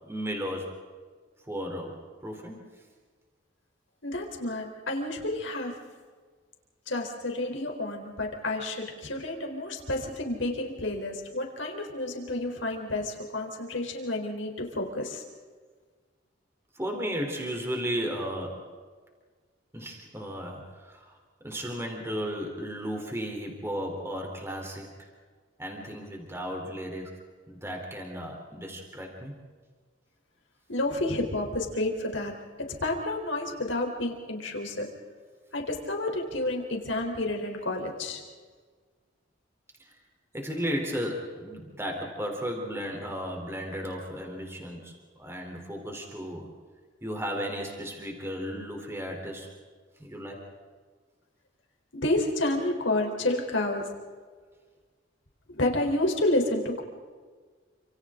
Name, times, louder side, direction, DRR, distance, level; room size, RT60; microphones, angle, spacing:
voice 1, 0.0-0.7 1.4-2.6 16.7-18.7 19.7-21.2 21.4-25.1 25.6-27.2 27.5-29.3 39.8-39.9 40.3-46.5 47.0-49.5 50.0-50.5, equal, 15° right, 1 dB, 3.7 m, -35 dB
voice 2, 4.0-5.7 6.9-15.2 30.7-32.3 32.6-34.9 35.5-38.2 51.9-53.9 55.5-56.8, left 2 dB, 85° left, 2 dB, 3.9 m, -30 dB
29.5 x 27.0 x 3.9 m, 1.5 s
head